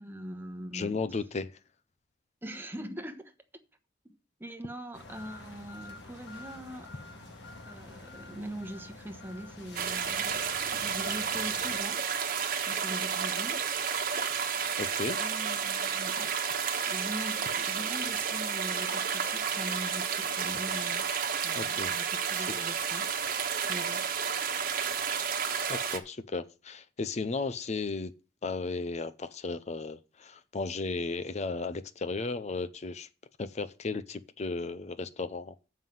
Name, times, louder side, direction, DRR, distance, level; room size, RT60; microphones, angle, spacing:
voice 1, 0.0-1.0 2.4-3.3 4.4-6.9 7.2-7.3 7.6-12.0 12.7-13.6 15.2-16.3 16.9-21.1 21.4-23.1 23.6-24.0, equal, 10° right, 1.1 m, -42 dB
voice 2, 0.7-1.5 14.8-15.2 21.6-21.9 22.4-22.5 25.7-28.1 28.4-33.1 33.4-35.5, left 3 dB, 40° left, 0.5 m, -35 dB
sound 1, 4.9-11.8, left 2 dB, 70° left, 1.9 m, -47 dB
sound 2, 9.7-26.0, right 7 dB, 50° right, 1.2 m, -31 dB
7.4 x 5.6 x 7.6 m
head